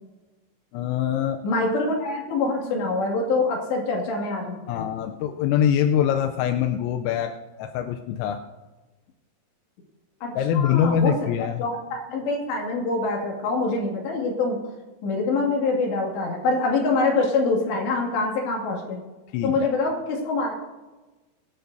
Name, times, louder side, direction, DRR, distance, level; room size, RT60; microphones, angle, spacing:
voice 1, 0.7-1.4 4.7-7.3 7.6-8.4 10.4-11.7 19.3-19.7, left 9 dB, 85° left, 5 dB, 3.3 m, -23 dB
voice 2, 1.4-4.8 10.2-11.1 11.6-14.6 15.0-19.0 19.4-20.5, left 3 dB, 65° left, -1 dB, 4.3 m, -25 dB
25.0 x 10.5 x 2.7 m, 1.2 s
omnidirectional pair, 5.8 m